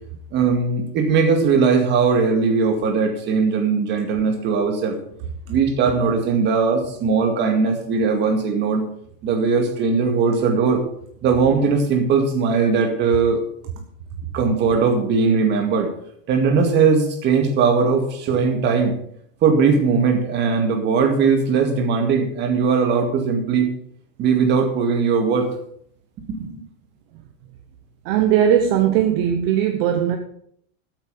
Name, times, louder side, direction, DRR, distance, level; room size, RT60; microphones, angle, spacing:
voice 1, 0.3-5.0 5.5-8.8 9.2-10.8 11.2-13.4 14.3-15.9 16.3-19.0 19.4-23.7 24.2-25.5 26.3-26.6, right 5 dB, 25° right, 4 dB, 2.1 m, -19 dB
voice 2, 28.0-30.2, right 9 dB, 45° right, 5 dB, 1.1 m, -18 dB
13.5 x 8.4 x 5.3 m, 0.67 s
supercardioid pair, 170°, 40 cm